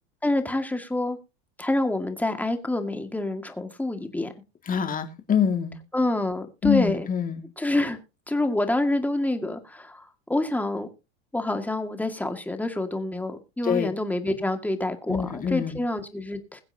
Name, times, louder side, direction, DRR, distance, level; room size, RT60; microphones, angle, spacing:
voice 1, 0.2-1.2 1.6-4.3 5.9-7.1 7.6-8.0 8.3-10.9 11.3-16.6, left 2 dB, 5° left, 2.0 m, -27 dB
voice 2, 4.7-5.8 6.6-7.4 13.6-13.9 15.1-15.8, left 7 dB, 25° left, 2.2 m, -25 dB
21.5 x 7.9 x 2.8 m
supercardioid pair, 120°, 32 cm